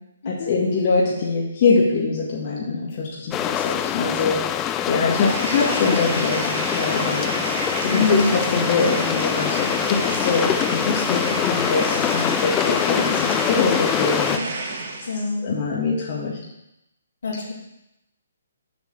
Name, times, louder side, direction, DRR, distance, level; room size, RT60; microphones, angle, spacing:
voice 1, 0.3-4.4 4.9-7.3 7.8-14.8 15.4-16.4, left 4 dB, 40° left, -4 dB, 2.0 m, -23 dB
sound 1, 3.3-14.4, left 10 dB, 20° left, 0.5 m, -24 dB
sound 2, 5.3-15.2, right 3 dB, 45° right, 1.8 m, -30 dB
voice 2, 7.9-8.3 15.1-15.4 17.2-17.5, left 3 dB, 70° left, -2 dB, 2.8 m, -24 dB
7.5 x 6.0 x 6.8 m, 0.89 s
hypercardioid pair, 145°, 0 cm